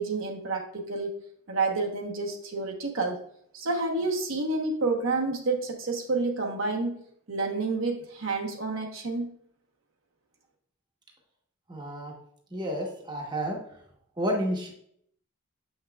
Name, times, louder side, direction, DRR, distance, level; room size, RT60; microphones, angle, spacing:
voice 1, 0.0-3.2 3.5-7.0 7.3-9.3, right 3 dB, 65° right, 1 dB, 1.0 m, -29 dB
voice 2, 11.7-12.1 12.5-13.6 14.2-14.7, equal, 20° right, 0 dB, 1.0 m, -30 dB
7.1 x 5.7 x 2.3 m, 0.66 s
head